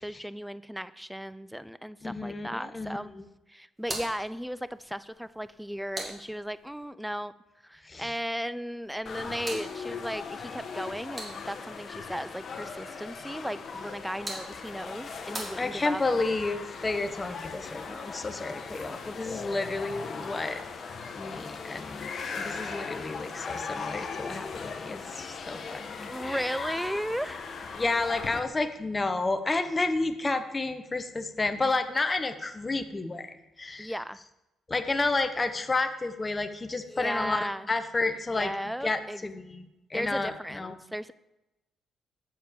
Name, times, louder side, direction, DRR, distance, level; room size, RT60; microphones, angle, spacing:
voice 1, 0.0-3.1 3.5-7.3 7.6-16.0 26.1-27.4 33.8-34.2 36.9-37.7 38.3-39.3 39.9-41.1, equal, ahead, 16 dB, 0.3 m, -35 dB
voice 2, 2.0-3.2 7.9-8.1 15.6-20.6 21.1-26.7 27.7-33.9 34.7-38.5 38.8-40.8, left 3 dB, 25° left, 8 dB, 0.7 m, -31 dB
sound 1, 3.8-6.8 8.8-11.8 13.8-16.2, right 1 dB, 30° right, 1.9 m, -43 dB
sound 2, 9.0-28.4, left 5 dB, 50° left, 1.0 m, -39 dB
7.4 x 7.2 x 4.6 m, 0.97 s
cardioid pair, 90°, 0 cm